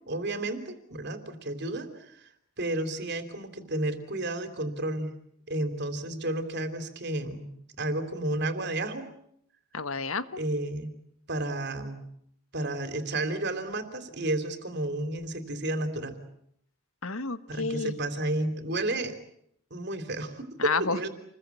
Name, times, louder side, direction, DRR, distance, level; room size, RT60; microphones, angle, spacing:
voice 1, 0.1-2.3 2.6-5.1 5.5-7.5 7.8-9.1 10.4-10.9 11.3-12.0 12.5-16.2 17.5-19.2 19.7-21.1, right 1 dB, 55° right, 8 dB, 3.4 m, -32 dB
voice 2, 9.7-10.4 17.0-17.9 20.6-21.1, left 4 dB, 90° left, 12 dB, 1.5 m, -30 dB
28.5 x 21.5 x 8.5 m, 0.72 s
head